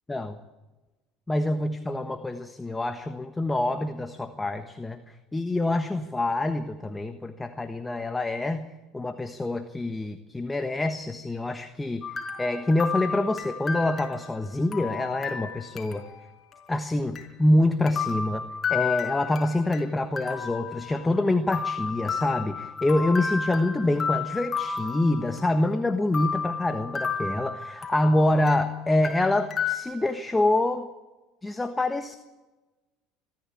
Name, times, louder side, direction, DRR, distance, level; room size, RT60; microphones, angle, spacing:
voice 1, 0.1-0.4 1.3-5.0 5.3-8.7 8.9-12.0 12.4-16.0 16.7-18.4 18.7-30.9 31.4-32.2, left 2 dB, 15° left, 8 dB, 1.3 m, -26 dB
sound 1, 12.0-16.2 16.5-16.6 17.2-17.3 17.9-19.8 20.2-21.2 21.5-25.7 26.1-28.7 29.0-29.8, left 6 dB, 30° left, 5.0 m, -32 dB
24.5 x 14.0 x 8.5 m, 1.2 s
hypercardioid pair, 85°, 0 cm